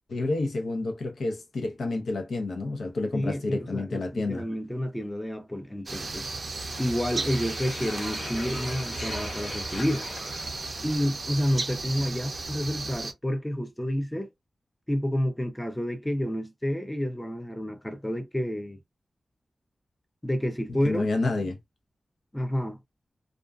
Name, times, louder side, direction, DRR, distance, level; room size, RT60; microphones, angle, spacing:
voice 1, 0.1-4.4 20.8-21.6, left 2 dB, 90° left, 0.6 m, -29 dB
voice 2, 3.1-6.3 6.8-10.2 10.8-14.3 14.9-18.8 20.2-21.1 22.3-22.8, equal, 10° left, 0.4 m, -29 dB
sound 1, 5.9-13.1, right 3 dB, 50° right, 0.4 m, -35 dB
sound 2, 6.7-11.6, left 2 dB, 65° left, 1.0 m, -41 dB
2.4 x 2.2 x 2.2 m
wide cardioid pair, 110°, 0 cm